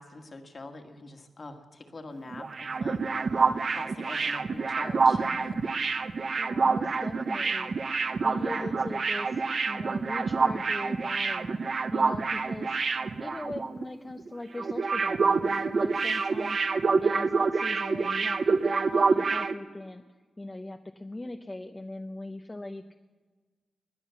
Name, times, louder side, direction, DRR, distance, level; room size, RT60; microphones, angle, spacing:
voice 1, 0.0-5.7 8.3-8.8, left 2 dB, 40° left, 4 dB, 1.8 m, -45 dB
sound 1, 2.3-13.9 14.1-14.3 14.6-19.5, right 4 dB, 50° right, 0.8 m, -27 dB
voice 2, 6.4-7.8 8.2-11.6 11.9-12.7 13.2-20.0 20.4-22.9, left 2 dB, 20° left, 5 dB, 0.7 m, -40 dB
20.5 x 9.9 x 7.0 m, 1.4 s
wide cardioid pair, 95°, 0 cm